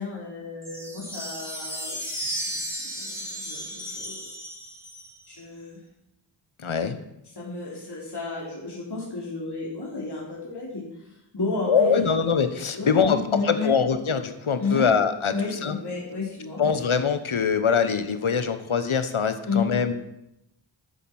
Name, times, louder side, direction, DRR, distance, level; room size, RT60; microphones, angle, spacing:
voice 1, 0.0-2.0 2.8-4.3 5.3-5.8 7.3-10.9 11.3-12.0 12.7-13.7 14.6-14.9 15.3-16.8 19.4-19.7, left 4 dB, 55° left, -5 dB, 3.1 m, -32 dB
sound 1, 0.6-5.4, equal, 5° right, 3.7 m, -34 dB
voice 2, 6.6-7.0 11.7-15.3 15.6-15.8 16.6-19.9, left 6 dB, 85° left, 10 dB, 1.1 m, -23 dB
12.5 x 7.4 x 6.0 m, 0.85 s
wide cardioid pair, 40°, 48 cm